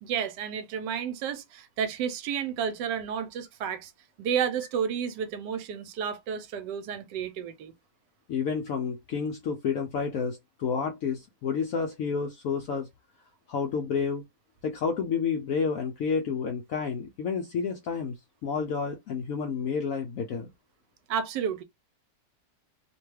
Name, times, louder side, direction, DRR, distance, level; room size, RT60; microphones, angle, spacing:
voice 1, 0.0-3.9 4.2-7.7 21.1-21.6, right 7 dB, 80° right, 1.2 m, -31 dB
voice 2, 8.3-12.9 13.5-14.2 14.6-18.1 18.4-20.5, left 5 dB, 75° left, 0.7 m, -30 dB
2.8 x 2.2 x 3.1 m
omnidirectional pair, 1.9 m